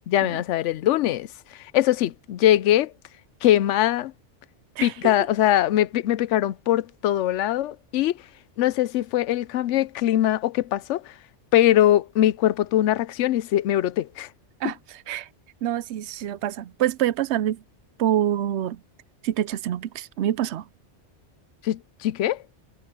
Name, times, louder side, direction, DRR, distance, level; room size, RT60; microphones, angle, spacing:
voice 1, 0.1-1.3 1.5-2.9 3.4-4.1 4.8-8.2 8.6-11.1 11.5-14.3 21.6-22.4, left 13 dB, 85° left, 0.9 m, -22 dB
voice 2, 4.8-5.1 14.6-15.3 15.6-17.6 18.0-18.8 19.2-20.7, right 11 dB, 75° right, 0.8 m, -26 dB
omnidirectional pair, 1.2 m